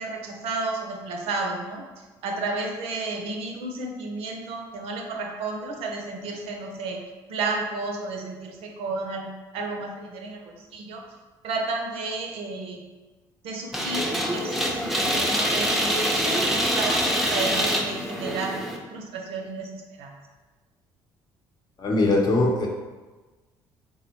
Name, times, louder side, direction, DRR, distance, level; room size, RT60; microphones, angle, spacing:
voice 1, 0.0-7.0 7.3-11.0 11.4-12.9 13.4-18.6 18.9-20.2, right 3 dB, 70° right, 1 dB, 0.5 m, -32 dB
sound 1, 13.7-18.8, equal, ahead, 0.5 m, -25 dB
voice 2, 21.8-22.7, left 2 dB, 40° left, -1 dB, 0.7 m, -21 dB
3.5 x 2.0 x 2.9 m, 1.3 s
hypercardioid pair, 65°, 10 cm